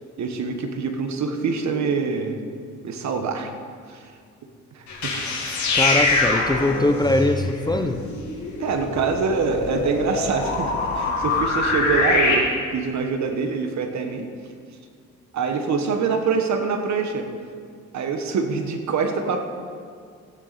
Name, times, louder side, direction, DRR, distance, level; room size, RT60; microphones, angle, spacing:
voice 1, 0.2-2.4 2.8-3.5 3.9-4.1 4.7-5.2 5.5-5.7 8.6-14.3 15.3-17.3 17.9-19.5, right 5 dB, 65° right, 6 dB, 1.3 m, -25 dB
sound 1, 4.9-12.3, left 3 dB, 70° left, 2.7 m, -24 dB
voice 2, 5.7-8.0, left 1 dB, 15° left, 7 dB, 0.6 m, -22 dB
15.5 x 9.7 x 4.2 m, 2.2 s
cardioid pair, 90°, 30 cm